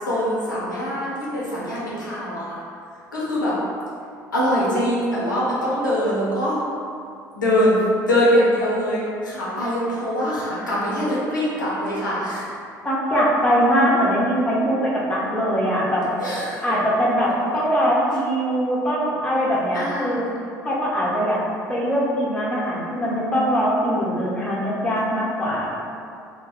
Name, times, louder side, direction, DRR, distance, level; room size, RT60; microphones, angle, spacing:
voice 1, 0.1-2.6 3.1-3.6 4.3-6.6 7.3-12.4 16.2-16.6 19.7-20.2, equal, 80° left, -8 dB, 0.5 m, -23 dB
voice 2, 12.8-16.0 16.6-20.2 20.6-21.4 21.7-25.9, equal, 10° left, -6 dB, 0.6 m, -22 dB
2.1 x 2.1 x 2.9 m, 2.3 s
figure-of-eight pair, 60°, 10 cm